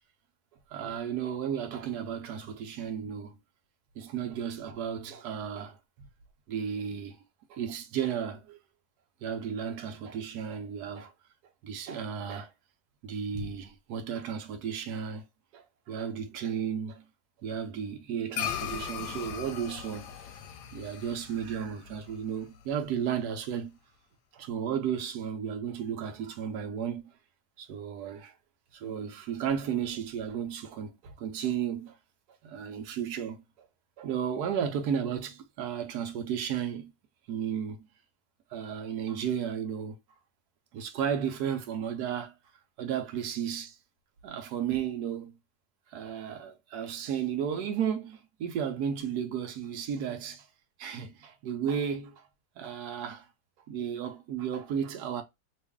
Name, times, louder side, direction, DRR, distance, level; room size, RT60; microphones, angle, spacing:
voice 1, 0.7-3.4 4.0-5.8 6.5-7.2 7.5-8.6 9.2-11.1 11.6-12.5 13.0-15.2 15.5-17.0 17.4-20.1 20.7-23.7 24.3-27.1 27.6-28.3 28.7-32.0 32.4-33.4 34.0-36.9 37.3-37.9 38.5-39.9 40.7-42.3 42.8-43.8 44.2-45.3 45.9-50.5 50.8-52.2 52.6-53.2 53.7-55.2, right 8 dB, 65° right, 1.2 m, -33 dB
sound 1, 18.3-23.0, left 9 dB, 75° left, 1.1 m, -38 dB
3.0 x 2.6 x 3.4 m
omnidirectional pair, 1.9 m